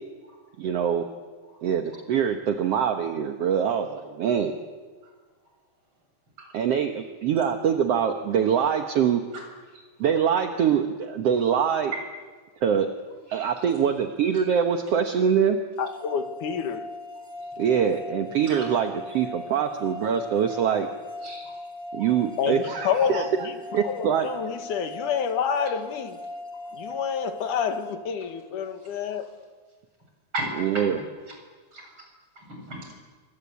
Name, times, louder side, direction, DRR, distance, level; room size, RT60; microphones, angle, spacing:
voice 1, 0.6-1.1 1.6-4.5 6.5-9.2 10.0-11.9 12.6-12.9 13.3-15.6 17.6-20.9 21.9-23.3 23.7-24.3 30.6-31.0, right 8 dB, 60° right, 5 dB, 2.1 m, -24 dB
voice 2, 15.8-16.8 22.4-23.5 23.8-26.2 26.7-29.3, left 7 dB, 85° left, 7 dB, 3.2 m, -28 dB
sound 1, 15.8-28.7, left 2 dB, 10° right, 1.6 m, -39 dB
voice 3, 21.2-21.5 22.0-22.1 30.3-31.0 31.7-31.9 32.4-32.9, right 1 dB, 40° right, 1 dB, 8.3 m, -35 dB
28.0 x 24.0 x 8.3 m, 1.4 s
omnidirectional pair, 3.5 m